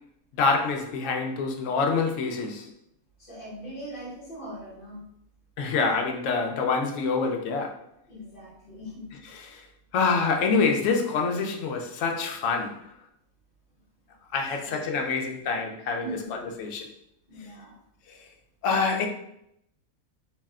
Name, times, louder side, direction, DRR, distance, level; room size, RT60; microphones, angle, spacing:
voice 1, 0.4-2.7 5.6-7.8 9.5-9.6 9.9-12.8 14.3-16.9 18.6-19.1, left 4 dB, 70° left, 0.8 m, -26 dB
voice 2, 3.2-5.0 8.1-9.2 14.6-15.0 15.4-15.5 16.0-16.6 17.3-17.8, right 1 dB, 40° left, 1.1 m, -41 dB
2.7 x 2.1 x 3.5 m
omnidirectional pair, 1.5 m